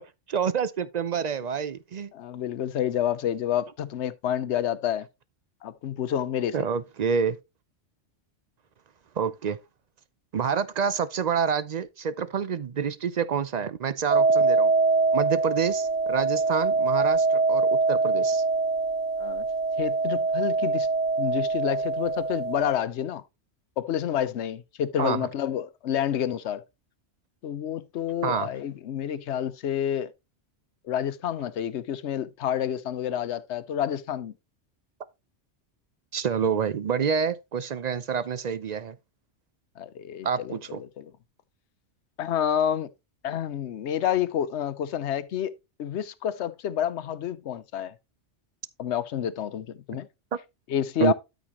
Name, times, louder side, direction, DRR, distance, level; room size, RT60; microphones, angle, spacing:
voice 1, 0.3-2.1 6.5-7.4 9.2-9.6 10.3-14.7 15.1-18.4 25.0-25.3 28.2-28.5 36.1-39.0 40.2-40.8 51.0-51.1, right 7 dB, 50° right, 0.5 m, -27 dB
voice 2, 2.1-5.1 5.6-6.5 19.2-19.4 19.8-20.9 21.2-23.2 23.8-26.6 27.4-30.1 30.9-34.3 39.8-41.1 42.2-42.9 43.2-45.5 45.8-47.9 48.8-50.1 50.7-51.1, left 10 dB, 70° left, 1.0 m, -29 dB
sound 1, 14.1-22.7, right 3 dB, 90° right, 2.1 m, -24 dB
12.5 x 5.1 x 3.0 m
omnidirectional pair, 1.2 m